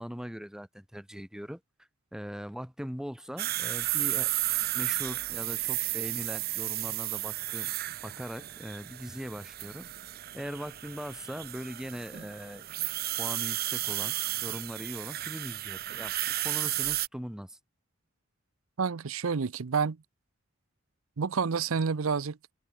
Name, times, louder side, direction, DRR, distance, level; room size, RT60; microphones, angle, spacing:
voice 1, 0.0-1.6 2.1-4.3 4.7-7.7 8.0-9.9 10.3-12.6 13.2-14.1 14.4-16.1 16.4-17.6, equal, 5° right, 1.1 m, -40 dB
sound 1, 3.4-17.1, right 16 dB, 45° right, 0.5 m, -33 dB
voice 2, 18.8-20.0 21.2-22.4, right 5 dB, 85° right, 0.6 m, -29 dB
head